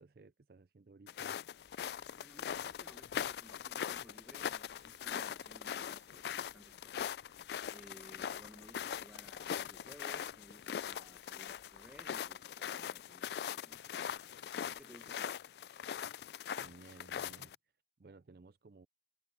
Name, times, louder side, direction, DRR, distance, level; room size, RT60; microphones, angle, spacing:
voice 1, 0.0-1.4 16.6-17.5 18.0-18.9, right 3 dB, 55° right, 0.5 m, -57 dB
sound 1, 1.1-17.6, left 8 dB, 65° left, 0.3 m, -41 dB
sound 2, 1.6-12.4, left 1 dB, 40° left, 2.4 m, -71 dB
voice 2, 2.1-7.1 7.7-13.9 14.5-15.4, equal, 5° right, 1.5 m, -59 dB
head